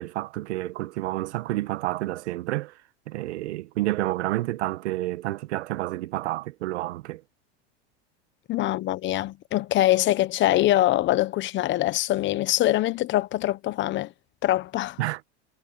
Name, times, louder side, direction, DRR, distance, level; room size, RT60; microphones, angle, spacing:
voice 1, 0.0-2.8 3.1-7.2 15.0-15.2, right 17 dB, 85° right, 1.6 m, -29 dB
voice 2, 8.5-14.1 14.4-15.0, left 15 dB, 35° left, 1.0 m, -23 dB
supercardioid pair, 135°, 33 cm